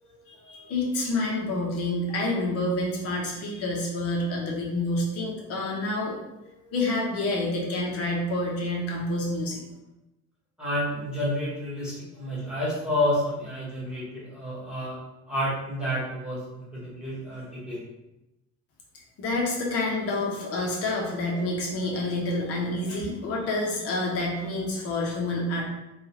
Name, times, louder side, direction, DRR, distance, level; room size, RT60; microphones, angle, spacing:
voice 1, 0.3-9.6 19.2-25.6, left 2 dB, 50° left, -2 dB, 0.9 m, -28 dB
voice 2, 10.6-15.0 15.3-17.9 22.9-23.0, left 1 dB, 5° right, -9 dB, 1.2 m, -30 dB
3.6 x 2.4 x 2.8 m, 0.94 s
cardioid pair, 155°, 30 cm